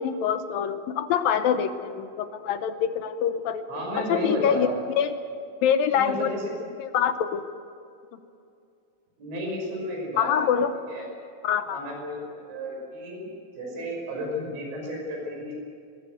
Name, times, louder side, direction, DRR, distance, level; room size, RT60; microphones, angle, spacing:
voice 1, 0.0-3.6 4.0-4.7 5.0-5.1 5.6-6.3 6.8-7.5 10.2-10.7 11.4-11.8, left 8 dB, 75° left, 9 dB, 2.2 m, -25 dB
voice 2, 3.7-4.8 5.9-6.4 9.2-10.3 10.9-11.1 11.7-13.3 13.6-15.6, equal, 80° right, 0 dB, 7.8 m, -32 dB
21.5 x 21.0 x 8.0 m, 2.5 s
omnidirectional pair, 5.1 m